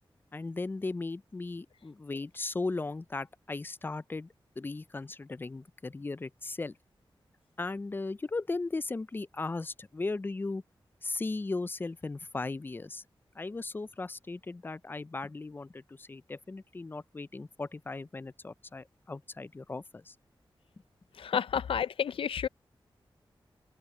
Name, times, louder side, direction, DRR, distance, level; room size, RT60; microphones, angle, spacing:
voice 1, 0.3-6.8 7.6-10.6 11.0-13.0 13.4-20.1, left 3 dB, 25° left, 0.3 m, -37 dB
voice 2, 21.2-22.5, left 8 dB, 85° left, 0.4 m, -30 dB
wide cardioid pair, 85°, 9 cm